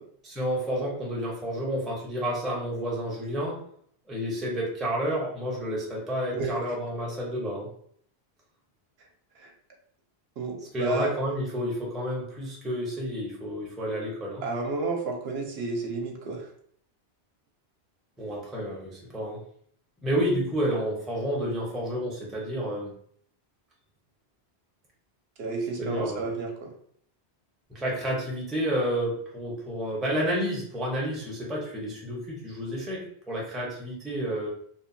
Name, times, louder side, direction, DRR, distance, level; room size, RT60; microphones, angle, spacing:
voice 1, 0.2-3.6 4.1-7.7 10.7-14.4 18.2-19.4 20.0-22.9 25.8-26.2 27.7-34.5, equal, ahead, -3 dB, 0.5 m, -30 dB
voice 2, 6.3-6.6 9.4-9.5 10.4-11.1 14.4-16.5 25.4-26.8, right 3 dB, 70° right, 1 dB, 0.8 m, -31 dB
2.7 x 2.2 x 2.6 m, 0.62 s
omnidirectional pair, 1.1 m